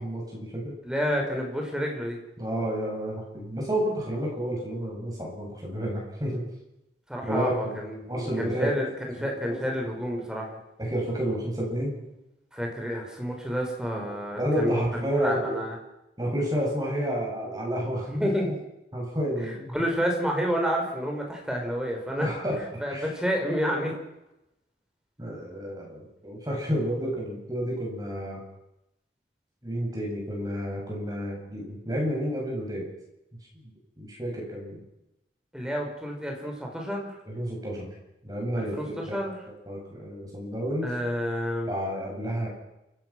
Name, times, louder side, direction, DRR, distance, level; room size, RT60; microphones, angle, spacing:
voice 1, 0.0-0.7 2.4-6.4 7.3-7.8 8.1-8.7 9.2-9.3 10.8-12.0 13.9-14.1 14.4-15.5 16.2-18.1 18.9-19.8 22.1-22.6 22.9-23.1 25.2-28.4 29.6-32.9 33.5-34.8 37.3-37.9 38.2-39.2 39.5-40.9 41.7-42.5, equal, 20° right, -2 dB, 7.9 m, -30 dB
voice 2, 0.8-2.2 7.1-8.9 9.2-10.6 12.5-15.8 18.1-18.5 19.4-22.3 22.8-23.9 35.5-37.2 38.6-39.4 40.8-41.7, equal, 5° right, 1 dB, 4.8 m, -29 dB
29.0 x 16.0 x 6.1 m, 0.89 s
head